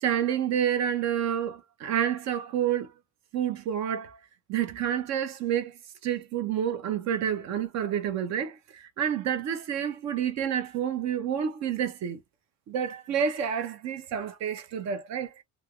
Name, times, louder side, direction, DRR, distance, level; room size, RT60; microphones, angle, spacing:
voice 1, 0.0-2.9 3.3-4.2 4.5-12.2 12.7-15.3, right 9 dB, 60° right, 0.7 m, -29 dB
3.2 x 2.4 x 2.3 m
cardioid pair, 160°, 31 cm